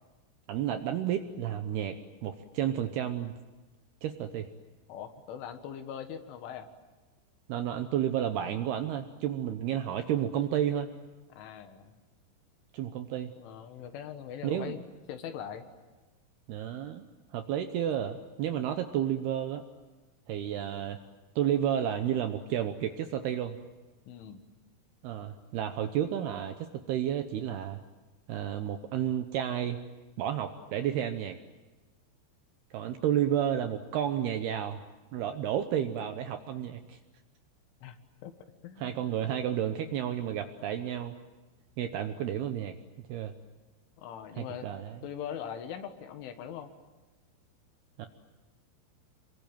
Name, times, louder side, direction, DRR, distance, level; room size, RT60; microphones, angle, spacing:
voice 1, 0.5-3.4 4.0-4.5 7.5-10.9 12.7-13.3 14.4-14.8 16.5-17.0 17.3-19.6 20.3-21.0 21.4-23.6 25.0-27.8 28.3-29.8 30.2-31.4 32.7-34.8 35.1-37.0 38.8-41.1 41.8-42.8 43.1-43.4 44.4-45.0 48.0-48.1, right 10 dB, 75° right, 7 dB, 2.5 m, -31 dB
voice 2, 4.9-6.7 11.3-11.9 13.4-14.8 15.1-15.7 24.1-24.4 32.9-33.0 37.8-38.0 38.2-38.4 38.6-39.0 44.0-46.7, left 9 dB, 75° left, 8 dB, 4.0 m, -41 dB
27.0 x 23.0 x 9.2 m, 1.2 s
omnidirectional pair, 5.7 m